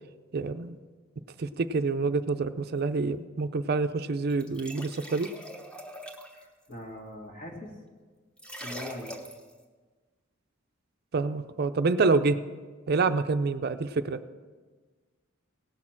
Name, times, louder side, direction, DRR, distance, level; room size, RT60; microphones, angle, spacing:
voice 1, 0.3-0.8 1.4-5.3 11.1-12.4 12.9-14.2, right 3 dB, 50° right, 11 dB, 0.5 m, -27 dB
sound 1, 4.3-6.4 8.4-9.5, equal, 5° left, 1.0 m, -42 dB
voice 2, 6.3-7.7 8.6-9.1, left 1 dB, 45° left, 1 dB, 2.0 m, -42 dB
17.5 x 6.5 x 5.9 m, 1.4 s
head